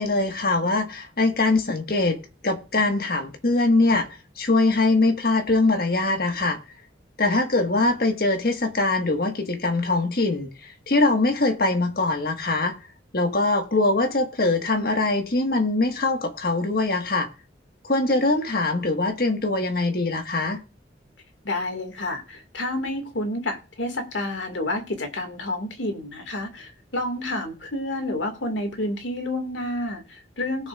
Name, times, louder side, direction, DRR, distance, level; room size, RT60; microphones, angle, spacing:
voice 1, 0.0-2.2 2.4-4.1 4.4-6.6 7.2-12.7 13.1-17.3 17.8-20.6, left 2 dB, 55° left, 1.6 m, -22 dB
voice 2, 21.4-30.7, left 1 dB, 90° left, 2.1 m, -29 dB
19.5 x 6.7 x 2.5 m
head